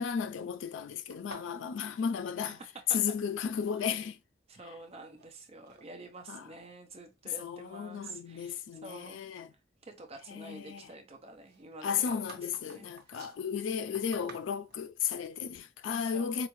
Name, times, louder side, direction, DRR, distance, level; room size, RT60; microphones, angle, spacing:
voice 1, 0.0-2.6 2.9-4.2 6.3-6.5 7.4-9.5 10.3-10.9 11.8-16.5, left 7 dB, 80° left, 0.3 m, -34 dB
sound 1, 1.1-3.1 3.4-4.1 4.8-5.3 5.7-5.9 6.5-6.6 7.2-8.7 9.0-9.2 11.5-14.9, right 4 dB, 55° right, 1.1 m, -52 dB
voice 2, 4.5-9.2 9.8-12.2 12.6-12.9 16.0-16.5, right 2 dB, 35° right, 0.5 m, -49 dB
4.5 x 2.4 x 3.0 m
head